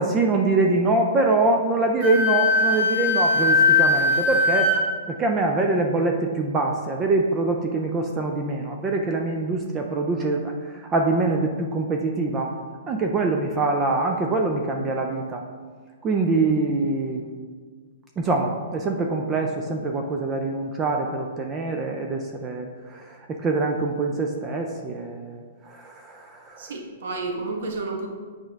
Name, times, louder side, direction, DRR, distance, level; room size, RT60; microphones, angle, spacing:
voice 1, 0.0-4.7 5.1-12.5 12.9-15.4 16.0-17.2 18.2-26.7, right 3 dB, 15° right, 3 dB, 0.4 m, -24 dB
Wind instrument woodwind instrument, 2.0-4.8, left 3 dB, 45° right, 1.1 m, -20 dB
voice 2, 26.6-28.1, right 3 dB, 65° right, 1 dB, 1.2 m, -31 dB
7.6 x 5.1 x 3.5 m, 1.5 s
hypercardioid pair, 160°, 0 cm